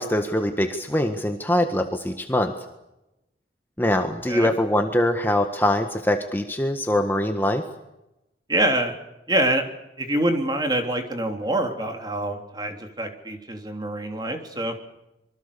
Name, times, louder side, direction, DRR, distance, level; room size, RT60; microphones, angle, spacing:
voice 1, 0.0-2.5 3.8-7.6, left 1 dB, 10° left, 5 dB, 1.6 m, -23 dB
voice 2, 8.5-8.9 9.3-9.6 10.0-14.7, right 1 dB, 25° right, 4 dB, 3.4 m, -25 dB
26.5 x 24.0 x 7.0 m, 0.93 s
head